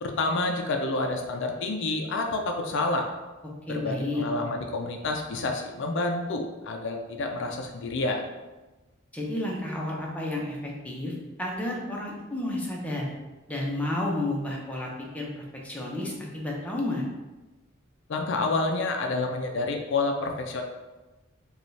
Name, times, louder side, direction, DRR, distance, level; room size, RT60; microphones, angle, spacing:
voice 1, 0.0-3.1 3.7-8.2 18.1-20.6, left 2 dB, 60° left, 3 dB, 0.4 m, -29 dB
voice 2, 3.7-4.3 9.1-11.1 11.4-13.1 13.5-17.0, left 1 dB, 5° left, -3 dB, 0.6 m, -31 dB
5.0 x 2.3 x 3.2 m, 1.2 s
head